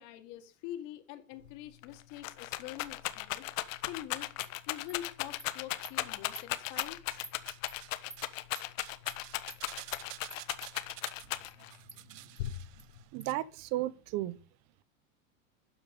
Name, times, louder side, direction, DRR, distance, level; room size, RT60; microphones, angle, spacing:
voice 1, 0.0-4.3 4.7-7.0, left 13 dB, 50° left, 2.5 m, -45 dB
Rattle, 1.4-1.5 1.8-11.8 12.4-13.0, left 15 dB, 70° left, 1.3 m, -37 dB
Animal, 4.4-4.5 4.9-5.0 5.4-5.5 5.8-5.9 6.4-6.5 6.8-6.9 7.2-7.4 7.7-7.8 8.1-8.2 8.5-8.7 9.1-9.2 9.5-9.6 9.9-10.0 10.3-10.7 11.0-11.1 11.5-11.6 11.9-12.0 12.4-12.5 12.8-12.9 13.2-13.3, right 2 dB, 5° right, 0.8 m, -47 dB
sound 1, 6.4-7.2 7.5-13.3 13.6-13.7, right 16 dB, 70° right, 1.0 m, -50 dB
voice 2, 13.1-14.4, right 15 dB, 40° right, 0.9 m, -34 dB
12.5 x 7.5 x 5.2 m
supercardioid pair, 135°, 41 cm